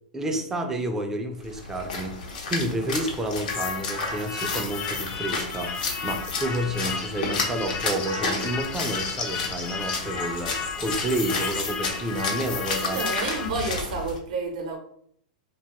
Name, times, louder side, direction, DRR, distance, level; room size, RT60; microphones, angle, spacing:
voice 1, 0.1-13.0, right 1 dB, 10° right, 4 dB, 0.4 m, -30 dB
Splash splatter, 1.4-14.2, left 4 dB, 80° left, 0.7 m, -32 dB
sound 1, 3.5-13.5, left 5 dB, 40° left, 0.6 m, -33 dB
voice 2, 12.9-14.8, right 3 dB, 65° right, 2 dB, 0.6 m, -30 dB
2.4 x 2.2 x 2.9 m, 0.64 s
hypercardioid pair, 135°, 4 cm